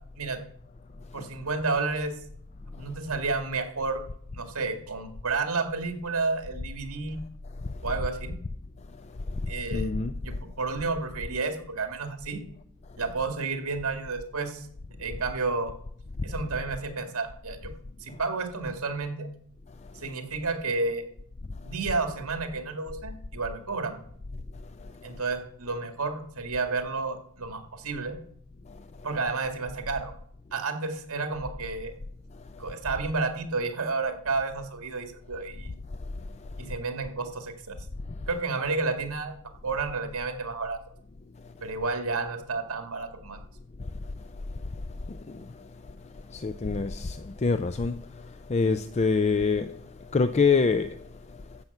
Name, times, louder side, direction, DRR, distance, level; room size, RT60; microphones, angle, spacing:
voice 1, 1.1-2.1 2.8-4.0 4.3-7.2 7.8-8.4 9.5-10.0 10.2-12.4 13.0-14.7 15.0-15.7 16.2-17.7 18.0-19.3 20.0-21.0 21.6-24.0 25.0-28.2 29.0-30.1 30.5-31.9 32.6-35.7 36.6-37.8 38.3-39.3 39.6-40.8 41.6-43.4, right 3 dB, 80° right, 2.0 m, -31 dB
voice 2, 9.3-10.1 24.8-24.9 28.7-28.8 45.1-45.7 46.3-51.0 51.3-51.4, left 4 dB, 30° left, 0.4 m, -27 dB
14.0 x 5.8 x 7.9 m
head